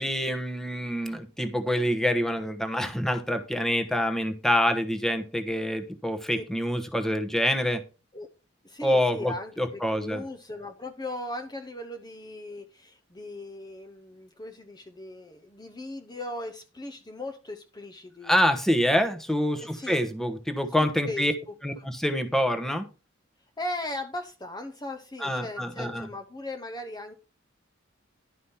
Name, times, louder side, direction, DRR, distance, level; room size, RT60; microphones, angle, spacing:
voice 1, 0.0-7.8 8.8-10.2 18.2-21.3 21.6-22.9 25.2-26.1, equal, ahead, 7 dB, 1.0 m, -26 dB
voice 2, 8.6-18.3 18.9-19.0 19.6-20.0 21.0-21.9 23.6-27.1, left 1 dB, 20° left, 5 dB, 0.8 m, -38 dB
11.5 x 5.1 x 5.6 m, 0.32 s
head